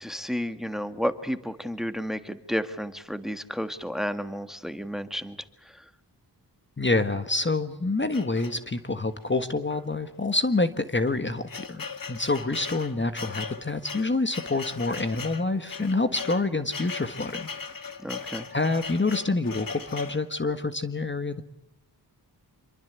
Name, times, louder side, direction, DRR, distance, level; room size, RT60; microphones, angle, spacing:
voice 1, 0.0-5.4 5.6-5.8 18.0-18.5, equal, ahead, 10 dB, 1.7 m, -32 dB
voice 2, 6.8-17.5 18.5-21.4, left 3 dB, 25° left, 10 dB, 1.5 m, -27 dB
sound 1, 8.1-9.0 9.7-9.8 10.1-10.2 10.9-20.2, left 5 dB, 55° left, 1.9 m, -39 dB
27.0 x 24.0 x 8.2 m, 0.81 s
wide cardioid pair, 85°, 41 cm